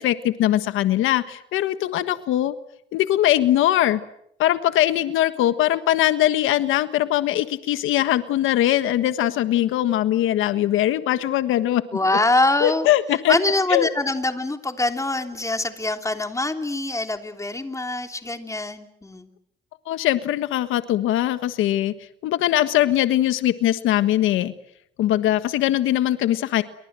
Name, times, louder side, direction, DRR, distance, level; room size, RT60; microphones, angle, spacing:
voice 1, 0.0-2.5 2.9-4.0 4.4-11.8 12.6-13.3 13.7-13.9 19.9-21.9 22.2-24.5 25.0-26.6, left 13 dB, 90° left, 12 dB, 1.5 m, -21 dB
voice 2, 11.9-12.9 13.3-19.3, left 2 dB, 15° left, 6 dB, 3.4 m, -24 dB
29.5 x 24.5 x 7.7 m, 0.75 s
cardioid pair, 90°, 20 cm